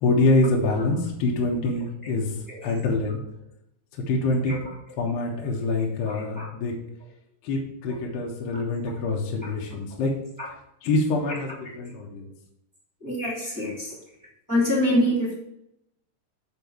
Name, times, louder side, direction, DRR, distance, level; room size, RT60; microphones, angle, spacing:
voice 1, 0.0-2.3 2.6-3.2 4.0-4.5 5.0-6.7 7.4-10.1 10.8-12.3, left 2 dB, 65° left, -1 dB, 3.1 m, -25 dB
voice 2, 6.0-6.5 9.4-9.5 10.4-10.5 11.3-11.4 11.8-11.9 13.0-13.9 14.5-15.3, left 1 dB, 5° right, -5 dB, 1.4 m, -26 dB
7.8 x 4.4 x 7.1 m, 0.79 s
omnidirectional pair, 5.6 m